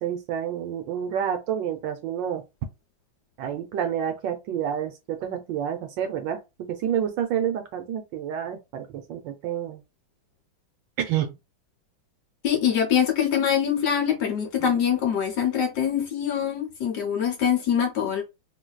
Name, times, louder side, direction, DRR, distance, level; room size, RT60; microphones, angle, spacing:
voice 1, 0.0-2.4 3.4-9.8 11.0-11.3 14.6-14.7, right 9 dB, 70° right, 1.2 m, -29 dB
voice 2, 12.4-18.2, left 8 dB, 65° left, 1.2 m, -24 dB
3.9 x 2.6 x 2.2 m
omnidirectional pair, 2.2 m